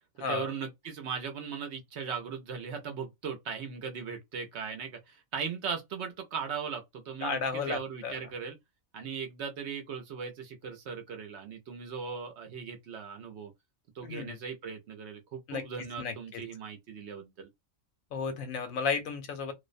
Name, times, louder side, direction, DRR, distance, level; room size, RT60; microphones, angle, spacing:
voice 1, 0.3-8.6 8.9-13.5 13.9-17.5, right 6 dB, 65° right, 0.8 m, -38 dB
voice 2, 7.2-8.1 14.0-14.4 15.5-15.6 16.0-16.4 18.1-19.5, left 5 dB, 80° left, 1.1 m, -33 dB
2.5 x 2.0 x 2.4 m
omnidirectional pair, 1.4 m